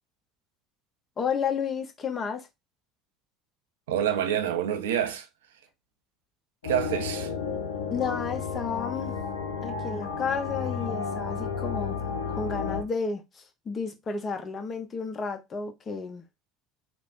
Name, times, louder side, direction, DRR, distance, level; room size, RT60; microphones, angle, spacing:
voice 1, 1.2-2.5 7.9-9.1 9.6-12.0 12.3-16.2, left 5 dB, 35° left, 0.8 m, -32 dB
voice 2, 3.9-5.3 6.6-7.3, right 10 dB, 80° right, 0.4 m, -27 dB
sound 1, 6.6-12.8, left 5 dB, 85° left, 0.5 m, -32 dB
3.3 x 2.1 x 2.5 m
hypercardioid pair, 70°, 0 cm